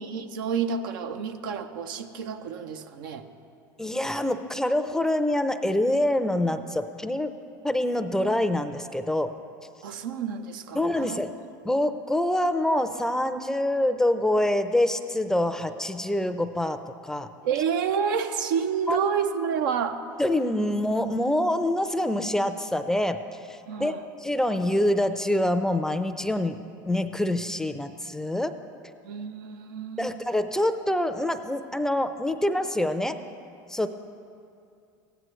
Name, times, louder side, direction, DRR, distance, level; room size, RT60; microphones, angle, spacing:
voice 1, 0.0-3.3 9.8-11.2 17.4-20.0 23.7-24.0 29.0-30.1, right 7 dB, 75° right, 7 dB, 0.6 m, -29 dB
voice 2, 3.8-7.3 7.6-9.3 10.7-11.3 11.7-16.8 17.0-17.3 18.9-19.0 20.2-23.2 23.5-23.9 24.2-26.6 26.9-28.5 30.0-33.2 33.7-33.9, left 1 dB, 5° left, 8 dB, 0.5 m, -25 dB
16.0 x 9.1 x 3.1 m, 2.4 s
hypercardioid pair, 85°, 11 cm